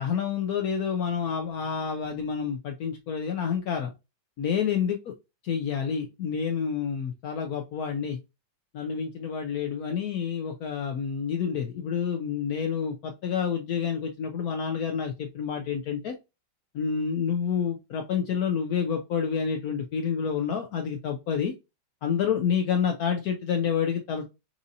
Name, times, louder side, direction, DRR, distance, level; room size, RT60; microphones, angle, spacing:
voice 1, 0.0-3.9 4.4-5.0 5.4-8.2 8.7-16.2 16.7-21.5 22.0-24.3, left 7 dB, 85° left, 4 dB, 0.8 m, -28 dB
6.0 x 2.7 x 2.7 m, 0.25 s
omnidirectional pair, 2.3 m